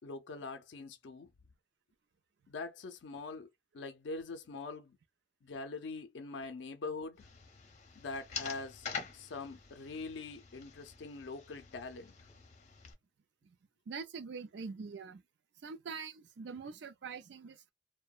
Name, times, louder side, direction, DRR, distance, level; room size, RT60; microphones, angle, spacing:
voice 1, 0.0-1.3 2.5-3.5 3.7-5.0 5.4-7.3 8.0-8.9 9.1-12.1, left 3 dB, 80° left, 0.4 m, -43 dB
sound 1, 7.2-12.9, left 6 dB, 40° left, 0.7 m, -46 dB
voice 2, 13.9-15.2 15.6-17.7, right 5 dB, 70° right, 0.4 m, -44 dB
2.8 x 2.1 x 2.3 m
head